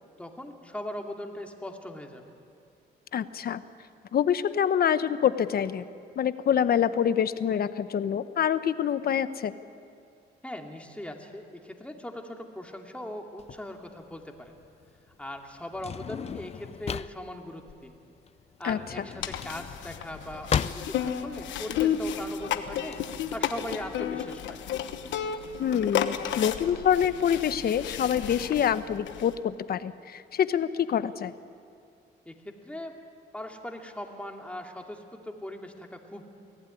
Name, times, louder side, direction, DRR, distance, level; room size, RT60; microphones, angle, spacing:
voice 1, 0.2-2.4 10.4-14.5 15.2-18.0 18.6-23.0 23.3-24.6 32.2-32.9 33.3-36.2, left 1 dB, 5° left, 2 dB, 2.6 m, -40 dB
voice 2, 3.1-3.6 4.1-5.8 6.2-9.5 18.6-18.8 25.6-31.3, left 8 dB, 55° left, 13 dB, 0.9 m, -26 dB
Drawer open or close, 13.4-23.0, left 7 dB, 35° left, 0.5 m, -36 dB
sound 1, 19.2-29.3, left 9 dB, 85° left, 1.2 m, -32 dB
23.5 x 16.0 x 9.9 m, 2.4 s
cardioid pair, 90°, 19 cm